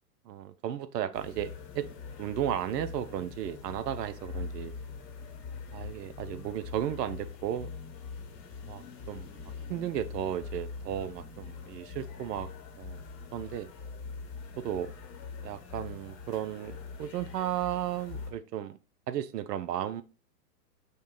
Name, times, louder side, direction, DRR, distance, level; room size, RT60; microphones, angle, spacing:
voice 1, 0.3-1.9 2.2-4.7 5.7-7.7 8.7-12.5 12.8-13.0 13.3-13.7 14.6-14.9 15.4-18.8 19.1-20.0, right 11 dB, 75° right, 12 dB, 0.6 m, -34 dB
sound 1, 1.1-18.3, left 5 dB, 30° left, 1.0 m, -43 dB
5.3 x 2.2 x 3.8 m, 0.33 s
hypercardioid pair, 130°, 49 cm